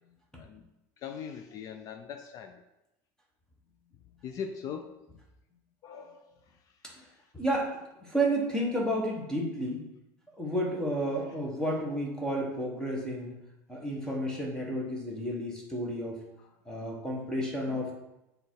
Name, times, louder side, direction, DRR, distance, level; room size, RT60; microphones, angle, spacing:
voice 1, 0.4-2.6 4.2-5.1 5.8-7.3 11.1-11.4 16.4-16.5 16.8-16.9 17.7-17.8, left 7 dB, 45° left, 7 dB, 0.4 m, -42 dB
voice 2, 7.3-9.8 10.4-13.4 13.7-16.2 16.6-17.9, right 1 dB, 10° left, -2 dB, 1.2 m, -31 dB
6.7 x 3.4 x 4.6 m, 0.92 s
supercardioid pair, 140°, 8 cm